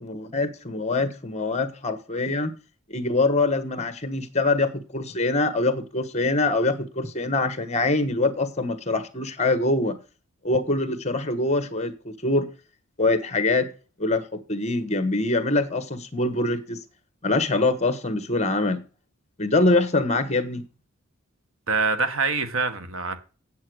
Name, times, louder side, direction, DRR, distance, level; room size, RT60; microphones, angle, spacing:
voice 1, 0.0-2.5 2.9-10.0 10.4-12.5 13.0-13.7 14.0-16.8 17.2-18.8 19.4-20.6, left 2 dB, 30° left, 1.2 m, -24 dB
voice 2, 21.7-23.2, right 4 dB, 70° right, 1.5 m, -25 dB
8.6 x 7.8 x 6.4 m
head